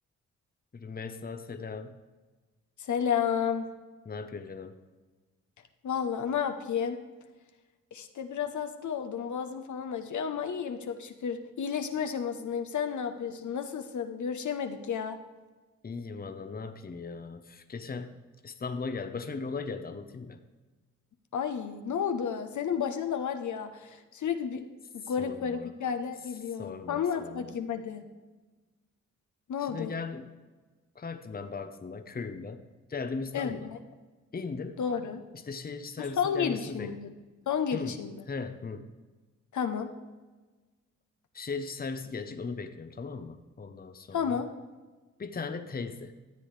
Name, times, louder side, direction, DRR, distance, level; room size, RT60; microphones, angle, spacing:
voice 1, 0.7-2.0 4.1-4.8 15.8-18.1 18.4-20.4 25.2-25.7 26.6-27.5 29.6-30.4 31.0-33.7 34.3-34.8 35.3-36.9 37.7-38.0 38.3-38.9 41.3-44.4 45.2-46.1, left 4 dB, 30° left, 8 dB, 0.8 m, -38 dB
voice 2, 2.8-3.7 5.8-7.0 7.9-15.2 21.3-24.6 24.9-28.0 29.5-30.0 33.3-33.8 34.8-35.2 36.0-37.1 37.5-38.3 39.5-39.9 44.1-44.5, left 7 dB, 65° left, 6 dB, 0.9 m, -32 dB
13.5 x 7.7 x 3.3 m, 1.3 s
cardioid pair, 55°, 31 cm